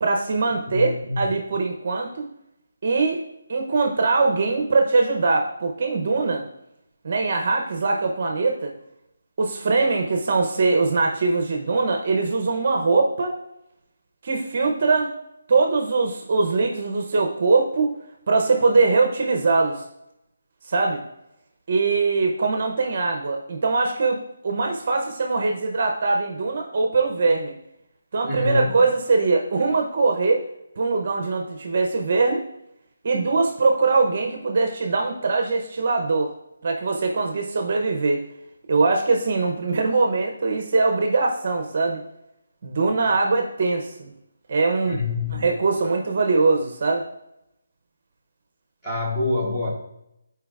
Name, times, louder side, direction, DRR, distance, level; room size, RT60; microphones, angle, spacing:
voice 1, 0.0-2.3 2.8-3.2 3.5-6.5 7.0-8.7 9.4-13.3 14.2-15.1 15.5-17.9 18.3-19.8 20.6-21.0 21.7-27.6 28.1-30.4 30.8-32.4 33.0-36.3 36.6-38.2 38.7-42.0 42.6-44.1 44.5-45.0 45.3-47.1, right 3 dB, 35° right, 3 dB, 0.7 m, -22 dB
voice 2, 0.7-1.3 28.2-28.7 44.8-45.5 48.8-49.7, left 3 dB, 5° left, -8 dB, 1.0 m, -26 dB
11.5 x 4.6 x 2.4 m, 0.84 s
hypercardioid pair, 175°, 0 cm